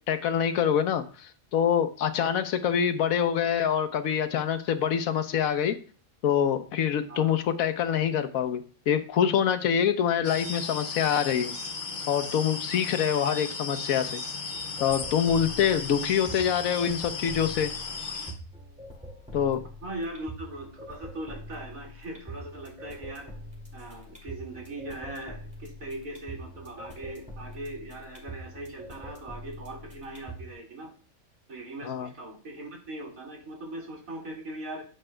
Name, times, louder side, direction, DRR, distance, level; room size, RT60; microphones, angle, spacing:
voice 1, 0.1-5.7 6.2-11.5 12.1-14.2 14.8-17.7 19.3-19.6 31.8-32.1, left 8 dB, 80° left, 8 dB, 1.2 m, -25 dB
sound 1, 10.2-18.3, left 4 dB, 65° left, 1.8 m, -36 dB
sound 2, 14.5-30.5, equal, 5° right, 2.2 m, -44 dB
voice 2, 19.8-23.3 23.7-30.9 31.5-34.8, right 1 dB, 75° right, -1 dB, 2.6 m, -40 dB
9.9 x 7.9 x 2.2 m, 0.40 s
omnidirectional pair, 1.5 m